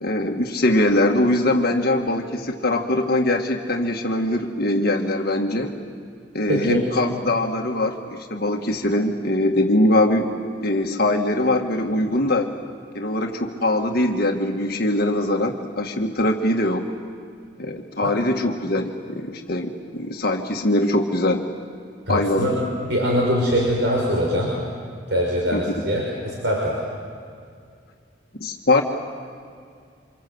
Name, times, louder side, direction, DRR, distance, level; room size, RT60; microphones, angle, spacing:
voice 1, 0.0-5.7 6.3-10.3 10.6-12.5 13.0-16.9 17.6-21.4 22.1-22.5 25.5-25.7 28.4-28.8, left 1 dB, 55° left, 2 dB, 1.9 m, -22 dB
voice 2, 6.5-6.8 18.0-18.1 22.1-22.6 22.9-24.5 25.1-26.8, equal, 70° right, -3 dB, 5.8 m, -22 dB
28.5 x 26.5 x 8.0 m, 2.2 s
head